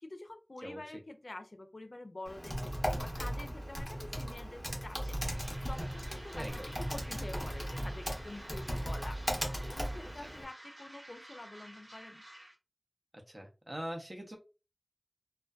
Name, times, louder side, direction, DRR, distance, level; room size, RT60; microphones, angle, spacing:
voice 1, 0.0-5.2 5.7-6.6 6.9-9.2 9.6-12.2, left 2 dB, 70° left, 7 dB, 0.4 m, -47 dB
Typing, 2.2-10.4, equal, 10° left, 0.7 m, -37 dB
sound 1, 4.9-12.5, right 1 dB, 85° right, 1.1 m, -52 dB
voice 2, 6.3-6.7 10.2-10.3 13.3-14.4, equal, 40° right, 2 dB, 0.7 m, -42 dB
2.5 x 2.1 x 2.3 m, 0.30 s
wide cardioid pair, 45°, 0 cm